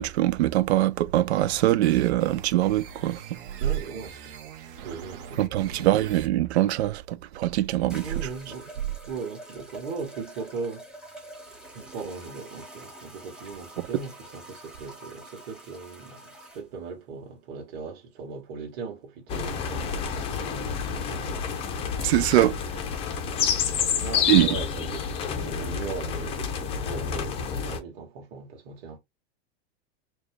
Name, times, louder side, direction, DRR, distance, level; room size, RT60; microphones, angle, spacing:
voice 1, 0.0-3.4 5.4-8.1 13.8-13.9 22.0-22.6 24.3-24.5, right 15 dB, 90° right, 0.5 m, -23 dB
sound 1, 1.3-6.3, right 6 dB, 55° right, 1.1 m, -43 dB
voice 2, 3.6-4.3 4.8-5.9 8.0-8.7 9.0-10.9 11.7-21.6 23.4-23.7 24.0-25.0 25.4-29.0, right 4 dB, 40° right, 1.7 m, -39 dB
sound 2, 7.9-16.6, right 1 dB, 5° right, 0.9 m, -46 dB
sound 3, 19.3-27.8, left 7 dB, 20° left, 0.5 m, -29 dB
4.4 x 2.3 x 3.2 m
supercardioid pair, 155°, 32 cm